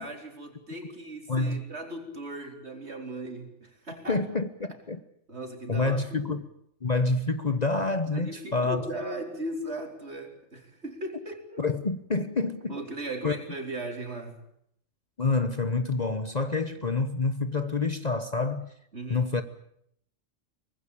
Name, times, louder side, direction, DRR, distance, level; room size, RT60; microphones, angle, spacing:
voice 1, 0.0-4.2 5.3-6.3 8.1-11.7 12.7-14.4 18.9-19.2, right 1 dB, 55° right, 4.4 m, -38 dB
voice 2, 1.3-1.6 4.1-5.0 5.7-6.5 6.8-8.9 11.6-12.8 13.2-13.4 15.2-18.7 19.1-19.4, left 3 dB, 35° left, 1.1 m, -27 dB
24.0 x 20.0 x 8.6 m
omnidirectional pair, 1.3 m